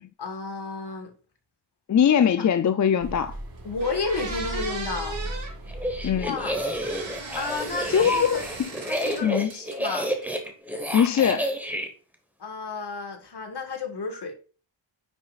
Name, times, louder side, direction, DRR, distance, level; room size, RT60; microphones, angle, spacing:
voice 1, 0.2-1.1 3.6-5.2 6.2-6.6 7.3-8.5 8.8-10.1 12.4-14.3, left 4 dB, 55° left, 1.6 m, -32 dB
voice 2, 1.9-3.3 6.0-6.4 7.9-8.7 9.2-9.5 10.9-11.5, left 8 dB, 40° left, 0.4 m, -21 dB
sound 1, 3.0-8.6, right 1 dB, 45° right, 1.6 m, -39 dB
sound 2, 3.3-3.4 3.8-5.5 6.4-9.2 9.5-10.2, right 3 dB, 70° right, 3.1 m, -37 dB
sound 3, 5.7-11.9, equal, 5° right, 1.1 m, -30 dB
9.6 x 6.2 x 2.4 m
wide cardioid pair, 140°, 48 cm